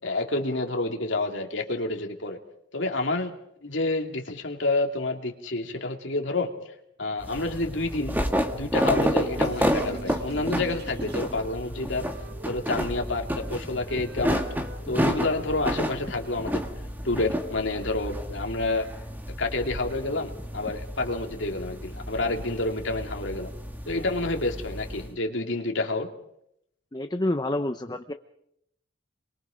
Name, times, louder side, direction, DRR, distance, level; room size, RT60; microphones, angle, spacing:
voice 1, 0.0-2.4 2.7-3.3 3.6-6.5 7.0-8.2 8.5-12.1 12.4-14.4 14.9-16.6 17.0-18.9 19.3-23.5 23.9-26.1, left 2 dB, 65° left, 3 dB, 2.7 m, -29 dB
sound 1, 7.2-25.1, equal, 10° right, 1.7 m, -30 dB
sound 2, 8.6-11.5, right 3 dB, 55° right, 5.2 m, -42 dB
Wind instrument woodwind instrument, 10.1-13.5 13.8-17.7, equal, 70° right, 5.3 m, -49 dB
voice 2, 26.9-28.1, left 1 dB, 20° left, 8 dB, 0.8 m, -28 dB
29.0 x 23.0 x 5.1 m, 0.75 s
head